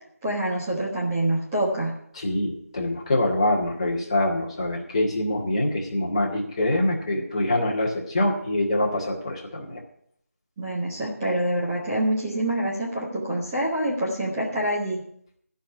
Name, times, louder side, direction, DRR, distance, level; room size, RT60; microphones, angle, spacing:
voice 1, 0.2-1.9 10.6-15.0, right 1 dB, 10° right, -8 dB, 1.3 m, -26 dB
voice 2, 2.1-9.8, left 1 dB, 25° left, -1 dB, 1.8 m, -25 dB
14.0 x 5.5 x 9.5 m, 0.67 s
figure-of-eight pair, 170°, 8 cm